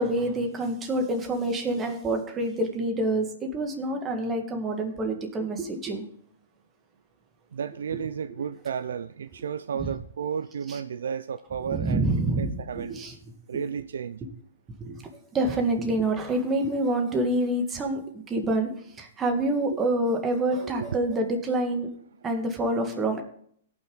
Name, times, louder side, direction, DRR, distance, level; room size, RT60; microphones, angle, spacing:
voice 1, 0.0-6.1 9.8-9.9 10.7-10.8 11.7-13.1 14.8-15.0 15.3-18.0 18.3-21.9 22.2-23.2, right 1 dB, 20° right, 1.8 m, -27 dB
voice 2, 7.5-12.0 12.4-12.9 13.5-14.2 20.6-21.0, right 7 dB, 75° right, 0.4 m, -33 dB
17.0 x 6.0 x 3.9 m
hypercardioid pair, 125°, 0 cm